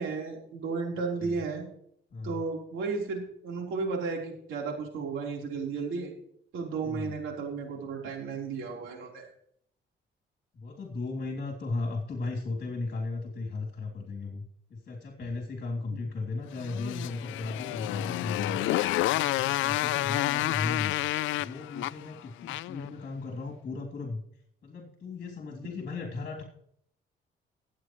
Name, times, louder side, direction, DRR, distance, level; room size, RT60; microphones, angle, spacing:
voice 1, 0.0-1.6 2.2-6.1 6.5-9.3 15.9-16.0, right 4 dB, 85° right, 0 dB, 4.0 m, -34 dB
voice 2, 6.8-7.2 10.5-14.4 14.7-18.7 19.1-21.0 21.4-24.2 24.6-26.4, left 3 dB, 50° left, 1 dB, 3.1 m, -36 dB
Motorcycle, 16.6-22.9, left 16 dB, 80° left, 0.4 m, -29 dB
23.5 x 8.6 x 3.1 m, 0.70 s
cardioid pair, 90°, 20 cm